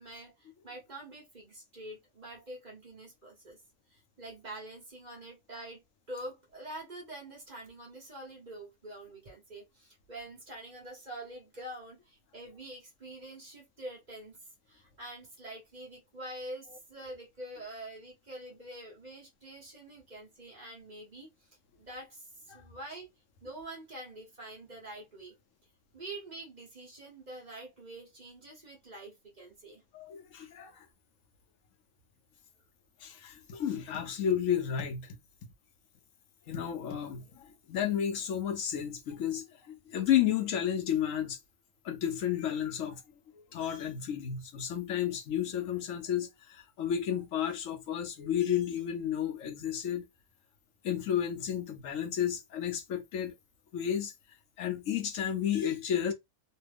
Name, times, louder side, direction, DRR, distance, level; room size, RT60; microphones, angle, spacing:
voice 1, 0.0-3.6 3.9-5.8 6.1-14.4 14.7-21.3 21.8-23.1 23.4-25.3 25.9-29.8, right 1 dB, 35° right, 1.2 m, -46 dB
voice 2, 29.9-30.9 33.0-35.2 36.5-41.4 41.8-43.0 43.5-50.0 50.8-53.3 53.7-54.1 54.6-56.1, left 9 dB, 75° left, 1.0 m, -32 dB
3.1 x 2.2 x 3.4 m
omnidirectional pair, 1.4 m